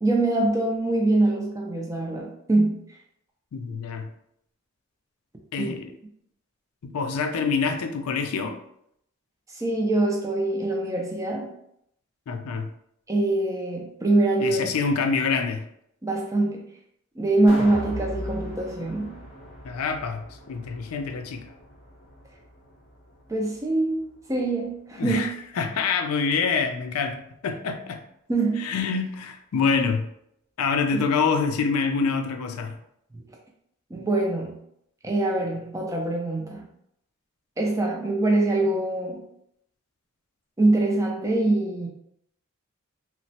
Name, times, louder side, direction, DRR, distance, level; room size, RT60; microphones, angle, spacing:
voice 1, 0.0-2.8 5.6-5.7 9.5-11.5 13.1-14.6 16.0-16.6 17.2-19.1 23.3-25.2 28.3-28.7 30.9-31.0 33.9-34.5 35.0-36.6 37.6-39.2 40.6-41.9, right 2 dB, 15° right, 0 dB, 0.3 m, -24 dB
voice 2, 3.5-4.1 5.5-5.9 6.8-8.6 12.3-12.7 14.4-15.7 19.6-21.5 25.0-28.0 28.6-30.1 30.6-32.8, left 5 dB, 85° left, 6 dB, 0.4 m, -26 dB
sound 1, 17.5-23.7 24.1-24.2, equal, 25° left, 0.6 m, -38 dB
3.0 x 2.0 x 2.7 m, 0.74 s
head